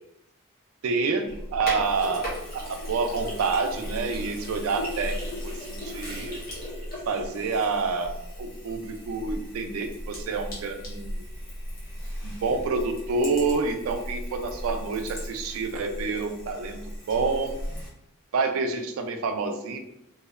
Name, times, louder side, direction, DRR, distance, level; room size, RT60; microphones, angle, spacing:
voice 1, 0.8-2.3 2.5-5.2 5.4-6.4 7.1-11.2 12.2-16.8 17.1-17.6 18.3-19.8, right 4 dB, 80° right, 6 dB, 0.3 m, -28 dB
Sink (filling or washing), 1.3-17.9, equal, 45° left, 0.7 m, -37 dB
2.6 x 2.0 x 2.4 m, 0.82 s
head